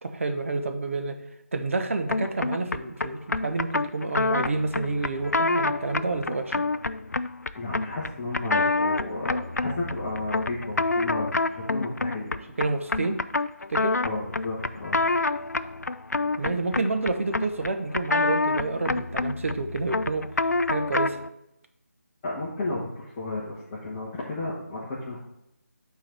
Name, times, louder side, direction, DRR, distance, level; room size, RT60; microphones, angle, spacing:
voice 1, 0.0-1.2 1.5-6.6 12.6-13.2 13.7-14.0 16.4-20.3 20.7-21.2, right 3 dB, 55° right, 6 dB, 0.9 m, -29 dB
sound 1, 2.1-21.3, left 3 dB, 85° left, 0.4 m, -27 dB
voice 2, 7.5-12.4 14.0-15.0 22.2-25.2, left 2 dB, 20° left, -8 dB, 1.1 m, -33 dB
8.7 x 4.0 x 4.4 m, 0.85 s
figure-of-eight pair, 160°, 9 cm